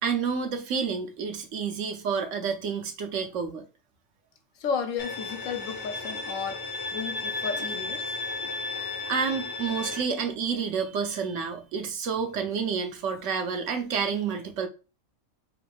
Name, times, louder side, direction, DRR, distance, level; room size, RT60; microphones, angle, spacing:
voice 1, 0.0-3.6 8.8-14.7, right 6 dB, 70° right, 1.0 m, -29 dB
voice 2, 4.6-6.7 6.9-8.5, left 6 dB, 75° left, 1.0 m, -33 dB
Bowed string instrument, 5.0-10.0, left 3 dB, 25° left, 0.6 m, -34 dB
3.9 x 2.6 x 3.3 m
omnidirectional pair, 1.4 m